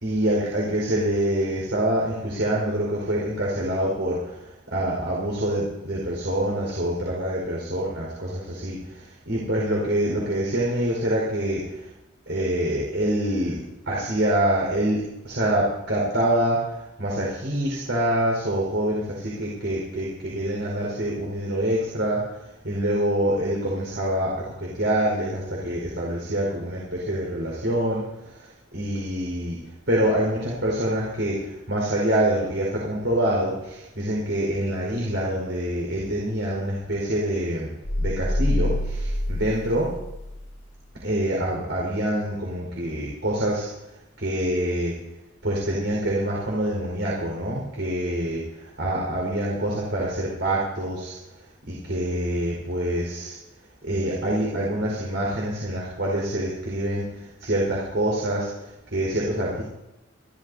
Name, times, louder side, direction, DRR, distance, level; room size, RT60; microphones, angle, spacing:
voice 1, 0.0-11.9 12.3-13.6 13.9-29.6 29.9-37.7 38.0-39.9 41.0-43.7 44.2-44.9 45.4-53.4 53.8-59.6, right 1 dB, 65° right, -4 dB, 4.8 m, -26 dB
sound 1, 37.8-40.6, left 1 dB, 65° left, 1.8 m, -26 dB
27.5 x 13.0 x 2.8 m, 0.95 s
head